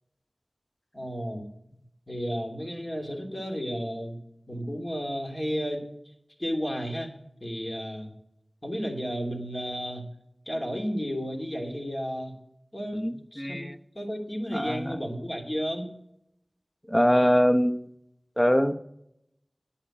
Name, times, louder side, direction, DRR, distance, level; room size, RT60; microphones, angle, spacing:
voice 1, 0.9-1.5 2.1-4.2 4.5-5.9 6.4-7.1 7.4-8.1 8.6-10.0 10.5-12.4 12.7-13.0 13.3-13.7 13.9-15.9, equal, 30° left, 1 dB, 3.0 m, -32 dB
voice 2, 12.9-13.8 14.5-15.1 16.9-17.8 18.4-18.8, equal, 15° left, 7 dB, 0.8 m, -23 dB
10.0 x 9.0 x 8.7 m, 0.78 s
wide cardioid pair, 50°, 0 cm